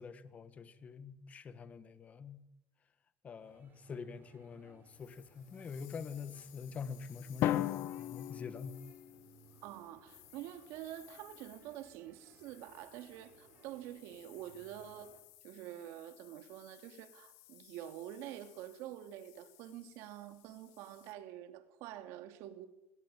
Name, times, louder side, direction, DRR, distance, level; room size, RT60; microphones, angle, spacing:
voice 1, 0.0-2.4 3.2-7.7 8.0-8.8, left 6 dB, 30° left, 1.6 m, -45 dB
sound 1, 3.4-15.2, right 6 dB, 40° right, 4.4 m, -65 dB
sound 2, 4.9-21.1, left 19 dB, 80° left, 1.8 m, -61 dB
Drum, 7.4-9.4, left 13 dB, 60° left, 0.9 m, -35 dB
voice 2, 9.6-15.1 15.4-22.7, right 12 dB, 75° right, 2.7 m, -47 dB
21.0 x 17.5 x 8.9 m
cardioid pair, 140°, 5 cm